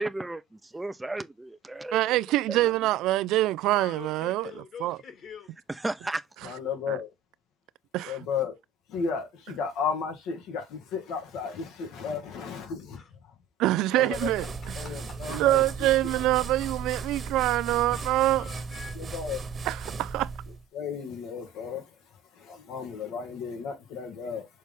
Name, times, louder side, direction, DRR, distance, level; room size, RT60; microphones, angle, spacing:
voice 1, 0.0-2.1 2.5-2.7 5.7-6.2, right 2 dB, 15° right, 0.7 m, -34 dB
voice 2, 1.9-4.5 4.8-5.0 6.9-7.0 7.9-8.2 13.6-14.4 15.3-18.5 19.7-20.3, right 16 dB, 85° right, 0.3 m, -25 dB
voice 3, 3.7-5.5 12.9-13.1 13.9-14.5 14.8-15.6 16.3-16.4 17.9-19.0, left 6 dB, 60° left, 2.7 m, -45 dB
voice 4, 6.4-7.1 8.1-8.6 8.9-13.0 13.9-14.3 14.8-15.6 18.9-19.4 20.7-21.9 22.3-24.5, left 6 dB, 85° left, 2.0 m, -34 dB
sound 1, 14.1-20.6, right 4 dB, 40° right, 1.3 m, -37 dB
6.3 x 4.1 x 3.6 m
cardioid pair, 90°, 0 cm